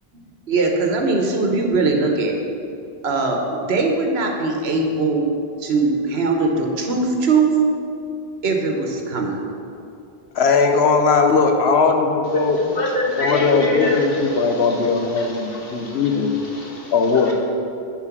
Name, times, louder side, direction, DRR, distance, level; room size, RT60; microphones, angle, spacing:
voice 1, 0.5-2.4 3.0-7.5 8.4-9.4, right 3 dB, 80° right, 2 dB, 1.2 m, -20 dB
voice 2, 10.3-12.6 13.2-14.1 14.3-16.3 16.9-17.3, left 4 dB, 85° left, 4 dB, 1.1 m, -18 dB
voice 3, 12.3-17.3, left 2 dB, 65° left, -2 dB, 1.6 m, -27 dB
9.6 x 4.4 x 5.9 m, 2.6 s
omnidirectional pair, 1.0 m